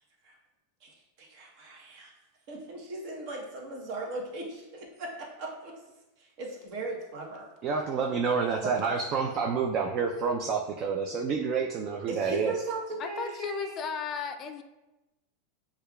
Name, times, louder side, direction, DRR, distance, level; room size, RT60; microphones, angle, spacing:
voice 1, 0.8-2.1 2.5-5.8 6.2-7.5 8.6-8.7 12.1-13.7, right 2 dB, 55° right, 0 dB, 0.9 m, -38 dB
voice 2, 7.6-12.6, right 5 dB, 40° right, 2 dB, 0.4 m, -28 dB
voice 3, 13.0-14.6, left 6 dB, 35° left, 7 dB, 0.3 m, -35 dB
6.4 x 2.3 x 2.3 m, 1.0 s
supercardioid pair, 135°, 0 cm